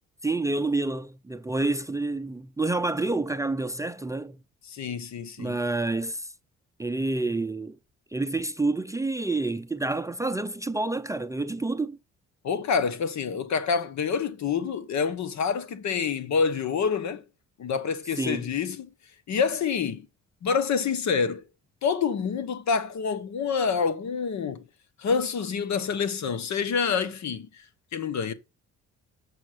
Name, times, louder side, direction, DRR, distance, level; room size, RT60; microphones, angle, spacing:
voice 1, 0.2-4.4 5.4-6.3 6.8-7.8 8.1-12.0 18.2-18.5, right 2 dB, 10° right, 0.5 m, -28 dB
voice 2, 4.7-5.6 12.4-17.2 17.6-18.9 19.3-20.1 20.4-21.4 21.8-24.6 25.0-27.6 27.9-28.3, left 6 dB, 65° left, 1.2 m, -27 dB
7.2 x 6.3 x 6.7 m
cardioid pair, 90°, 30 cm